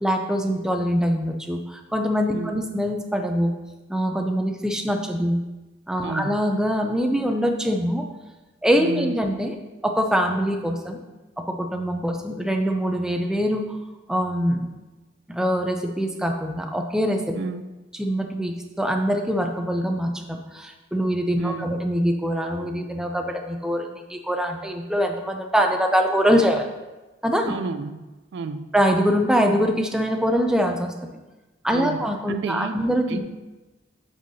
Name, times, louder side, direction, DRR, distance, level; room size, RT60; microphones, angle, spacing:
voice 1, 0.0-3.5 3.9-5.4 5.9-8.0 8.6-11.0 11.4-13.8 14.1-14.7 15.3-17.3 18.0-26.7 27.2-27.5 28.7-31.1 31.6-33.2, equal, 5° right, 3 dB, 0.5 m, -23 dB
voice 2, 6.0-6.4 8.8-9.1 17.3-17.6 21.4-21.7 27.5-28.0 28.3-28.7 31.7-32.8 33.1-33.2, right 4 dB, 65° right, 10 dB, 0.3 m, -31 dB
7.6 x 5.4 x 2.8 m, 1.1 s
head